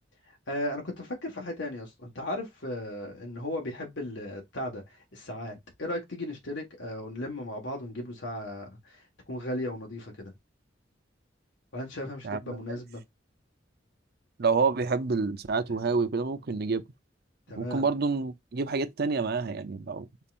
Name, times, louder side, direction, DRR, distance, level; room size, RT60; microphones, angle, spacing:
voice 1, 0.3-10.3 11.7-13.0 17.5-17.9, left 1 dB, 75° left, 1.5 m, -36 dB
voice 2, 12.2-12.6 14.4-16.9 17.6-20.1, right 4 dB, 55° right, 0.6 m, -28 dB
5.4 x 3.6 x 2.5 m
head